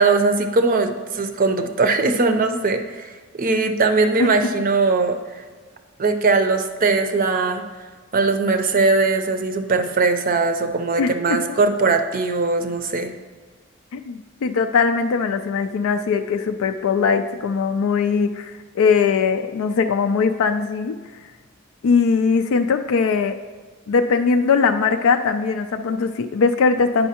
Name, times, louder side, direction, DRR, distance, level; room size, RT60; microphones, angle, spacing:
voice 1, 0.0-5.4 6.0-7.6 8.1-13.1, right 3 dB, 40° right, 7 dB, 0.5 m, -20 dB
voice 2, 13.9-21.0 21.8-23.4 23.9-27.1, left 5 dB, 80° left, 7 dB, 0.4 m, -20 dB
9.1 x 5.4 x 2.9 m, 1.5 s
head